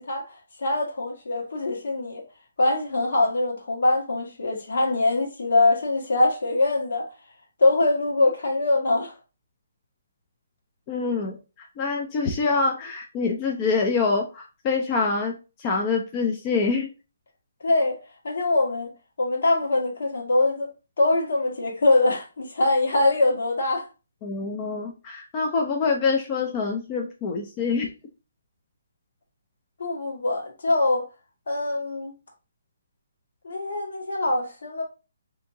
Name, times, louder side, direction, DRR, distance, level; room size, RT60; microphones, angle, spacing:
voice 1, 0.1-2.2 2.6-7.1 7.6-9.1 17.6-18.9 19.2-20.7 21.0-23.9 29.8-31.1 31.5-32.1 33.4-34.8, left 2 dB, 70° left, 1.4 m, -23 dB
voice 2, 10.9-15.3 15.6-16.9 24.2-27.9, left 4 dB, 30° left, 0.5 m, -25 dB
3.4 x 2.8 x 2.7 m
hypercardioid pair, 150°, 0 cm